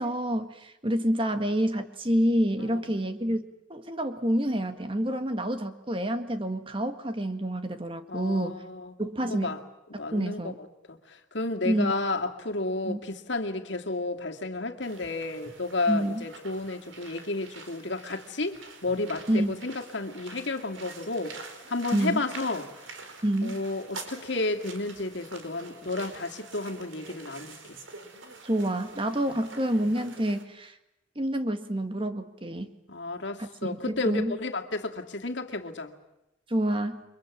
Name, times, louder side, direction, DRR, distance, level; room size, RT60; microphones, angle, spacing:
voice 1, 0.0-8.6 9.0-9.6 10.1-10.6 11.7-11.9 12.9-13.0 15.9-16.2 19.3-19.6 21.9-22.2 23.2-23.6 28.4-30.7 31.2-32.8 33.4-34.3 36.5-37.0, right 1 dB, 25° right, 1.8 m, -28 dB
voice 2, 8.1-8.9 9.2-9.6 9.9-22.9 23.4-27.8 29.3-29.4 32.9-35.9, left 2 dB, 70° left, 2.3 m, -32 dB
sound 1, 14.8-30.4, right 3 dB, 85° right, 4.6 m, -46 dB
30.0 x 24.0 x 7.4 m
head